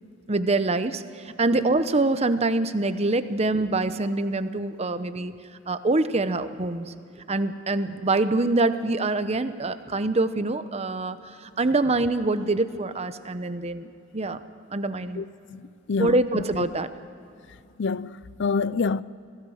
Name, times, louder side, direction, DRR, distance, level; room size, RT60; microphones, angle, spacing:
voice 1, 0.3-5.3 5.7-6.9 7.3-14.4 14.7-15.2 16.0-16.9, right 2 dB, 30° right, 0.9 m, -25 dB
voice 2, 15.1-16.7 17.8-19.0, left 4 dB, 60° left, 0.5 m, -28 dB
25.5 x 17.0 x 6.4 m
head